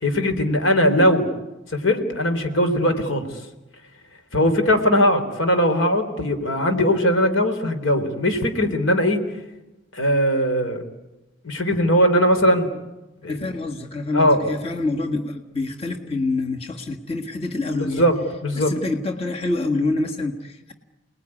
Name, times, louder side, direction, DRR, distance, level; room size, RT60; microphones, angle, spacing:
voice 1, 0.0-1.3 1.7-3.3 4.3-9.2 9.9-10.8 11.4-12.7 13.2-13.4 14.1-14.5 18.0-18.7, equal, 90° left, 7 dB, 3.6 m, -20 dB
voice 2, 13.3-18.1 18.6-20.7, left 2 dB, 30° left, 3 dB, 1.8 m, -26 dB
29.0 x 20.5 x 9.8 m, 1.0 s
head